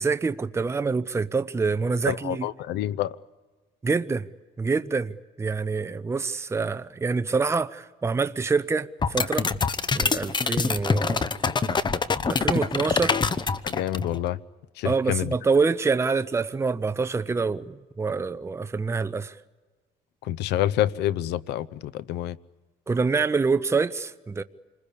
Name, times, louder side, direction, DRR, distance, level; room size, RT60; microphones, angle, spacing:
voice 1, 0.0-2.5 3.8-4.3 4.6-5.1 5.4-9.5 9.9-11.3 12.3-13.2 14.8-19.4 22.9-24.4, right 4 dB, 15° right, 0.7 m, -26 dB
voice 2, 2.1-3.2 13.6-14.4 14.8-15.3 20.2-22.4, left 13 dB, 80° left, 0.8 m, -27 dB
sound 1, 9.0-14.2, left 4 dB, 25° left, 0.9 m, -25 dB
27.5 x 20.5 x 8.5 m
cardioid pair, 110°, 17 cm